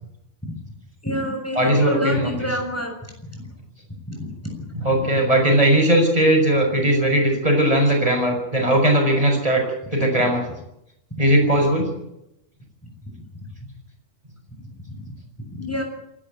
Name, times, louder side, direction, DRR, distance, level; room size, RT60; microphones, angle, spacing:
voice 1, 1.0-2.9 3.3-3.4 4.1-4.3 13.4-13.5 14.9-15.1 15.5-15.8, left 1 dB, 10° left, 2 dB, 6.8 m, -27 dB
voice 2, 1.6-2.5 4.8-10.4 11.2-11.9, right 1 dB, 30° right, 2 dB, 6.5 m, -18 dB
27.0 x 12.5 x 9.2 m, 0.83 s
omnidirectional pair, 1.2 m